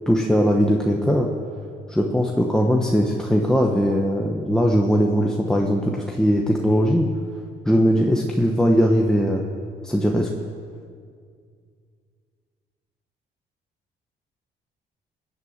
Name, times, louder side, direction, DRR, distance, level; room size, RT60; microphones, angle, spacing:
voice 1, 0.1-1.3 1.9-7.1 7.6-9.4 9.8-10.3, equal, 5° left, 0 dB, 1.2 m, -20 dB
19.0 x 8.3 x 7.3 m, 2.2 s
cardioid pair, 90°, 20 cm